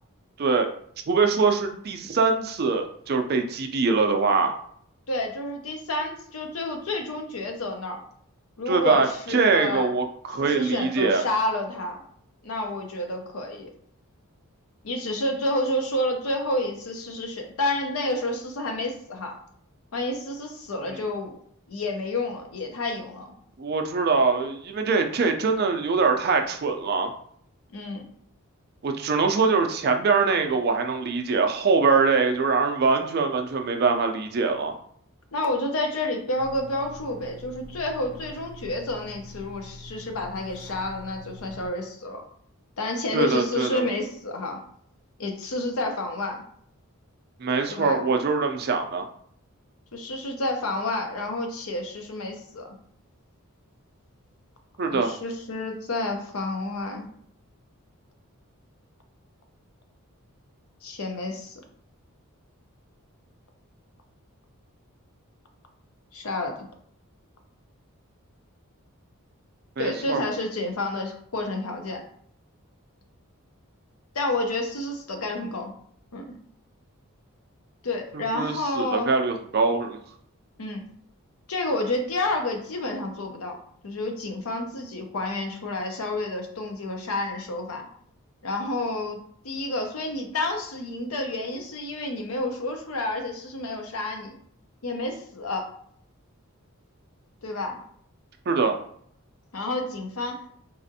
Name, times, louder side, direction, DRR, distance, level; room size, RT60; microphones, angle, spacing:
voice 1, 1.1-4.5 8.7-11.2 23.6-27.1 28.8-34.7 43.1-43.8 47.4-49.1 54.8-55.1 69.8-70.2 78.3-80.0 98.5-98.8, right 4 dB, 45° right, 5 dB, 0.4 m, -23 dB
voice 2, 5.1-8.0 8.6-9.9 10.4-12.0 12.4-13.7 14.8-19.4 19.9-21.4 21.7-23.3 27.7-28.1 35.3-42.2 42.8-44.6 45.2-46.4 47.7-48.0 49.9-52.8 54.9-57.1 60.8-61.6 66.1-66.5 69.8-72.0 74.1-75.7 76.1-76.3 77.8-79.1 80.6-80.8 81.5-83.6 83.8-87.9 88.4-89.2 89.4-94.3 94.8-95.7 97.4-97.8 99.5-100.4, left 2 dB, 75° left, 4 dB, 0.6 m, -29 dB
sound 1, 36.4-41.7, left 1 dB, 5° left, 0.6 m, -44 dB
4.0 x 2.5 x 2.7 m, 0.64 s
head